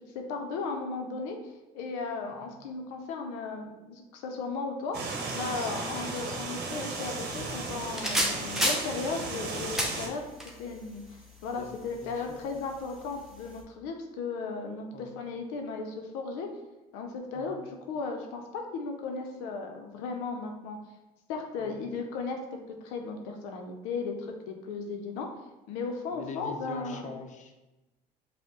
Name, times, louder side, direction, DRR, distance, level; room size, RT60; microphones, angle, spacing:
voice 1, 0.1-5.0 5.3-10.3 10.6-16.5 16.9-20.8 21.3-22.4 22.7-25.3 25.7-27.2, left 4 dB, 85° left, 3 dB, 0.5 m, -36 dB
sound 1, 4.9-10.1, right 3 dB, 60° right, 0.9 m, -35 dB
sound 2, 7.2-13.6, equal, ahead, 0.9 m, -35 dB
voice 2, 11.6-12.4 14.9-15.1 17.4-17.5 21.6-21.8 26.1-27.6, left 4 dB, 40° left, 4 dB, 0.6 m, -43 dB
5.1 x 2.1 x 3.7 m, 1.1 s
supercardioid pair, 70°, 19 cm